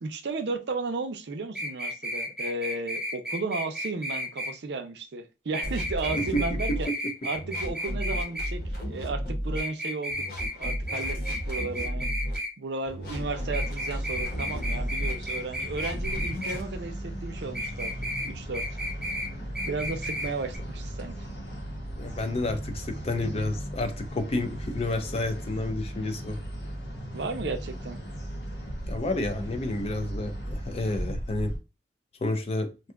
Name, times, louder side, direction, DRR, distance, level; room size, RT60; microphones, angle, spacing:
voice 1, 0.0-6.9 7.2-10.3 10.6-11.2 11.5-12.1 12.6-17.9 18.2-18.6 19.6-21.1 27.1-28.0, right 3 dB, 65° right, 0.5 m, -34 dB
sound 1, 1.5-4.5 5.5-8.5 9.5-12.5 13.5-16.6 17.5-18.3 18.5-19.3 19.5-20.3 20.5-20.6, left 1 dB, ahead, 0.7 m, -33 dB
sound 2, 5.6-6.9 7.3-9.6 10.1-12.4 12.9-15.1 15.6-16.7, equal, 55° left, 0.9 m, -33 dB
sound 3, 13.0-31.6, equal, 80° left, 1.0 m, -37 dB
voice 2, 22.0-26.4 28.9-31.5 32.2-32.7, left 2 dB, 35° left, 0.4 m, -30 dB
2.6 x 2.3 x 3.5 m
head